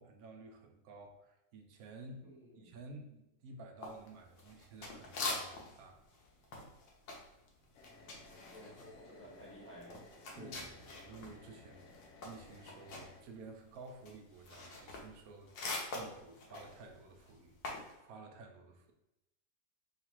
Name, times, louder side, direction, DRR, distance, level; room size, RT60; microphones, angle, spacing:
voice 1, 0.0-2.3 2.6-6.1 10.3-11.9 12.2-15.5 15.9-17.5 17.9-18.9, right 3 dB, 70° right, 4 dB, 0.9 m, -53 dB
voice 2, 2.2-2.7 8.3-10.0, equal, 15° left, -5 dB, 0.5 m, -55 dB
sound 1, 3.8-5.8 6.1-11.4 11.7-17.9, left 2 dB, 90° left, 1.5 m, -44 dB
sound 2, 7.7-13.2, left 3 dB, 60° left, 0.7 m, -57 dB
3.8 x 2.4 x 4.4 m, 0.91 s
omnidirectional pair, 1.9 m